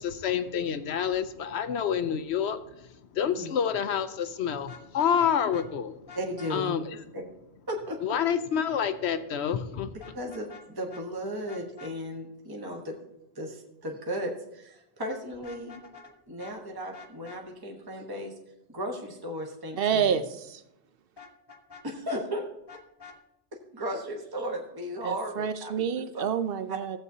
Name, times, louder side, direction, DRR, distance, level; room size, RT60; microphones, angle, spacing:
voice 1, 0.0-2.6 3.1-6.0 6.5-7.0 8.0-9.9, left 8 dB, 70° left, 11 dB, 0.9 m, -28 dB
voice 2, 3.2-3.6 6.1-6.8 7.1-7.2 7.7-8.2 9.9-13.0 13.3-18.3 18.7-20.2 21.8-22.4 23.7-26.2 26.7-26.8, equal, 20° right, 1 dB, 1.1 m, -36 dB
Vehicle horn car horn honking, 4.6-5.7 6.1-6.5 10.0-10.6 10.9-11.0 11.5-11.9 15.3-16.1 16.4-16.6 16.9-17.4 21.2-22.2 22.7-23.2, left 5 dB, 25° left, 0.7 m, -47 dB
voice 3, 19.8-20.6 25.0-27.0, right 7 dB, 60° right, 11 dB, 0.7 m, -28 dB
15.0 x 8.0 x 2.7 m, 0.84 s
omnidirectional pair, 1.2 m